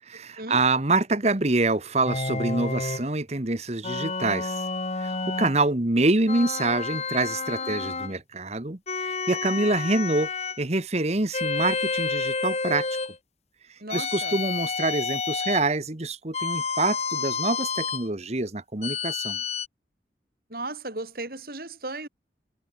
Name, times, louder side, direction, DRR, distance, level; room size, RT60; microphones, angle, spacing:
voice 1, 0.1-4.6 5.0-10.3 10.6-12.9 13.9-19.4, right 2 dB, 35° right, 1.4 m, -26 dB
sound 1, 2.1-3.1 3.8-5.6 6.3-8.2 8.9-10.6 11.3-13.2 13.9-15.7 16.3-18.1 18.8-19.7, left 4 dB, 35° left, 1.5 m, -30 dB
voice 2, 13.8-14.4 20.5-22.1, right 2 dB, 55° right, 4.1 m, -35 dB
head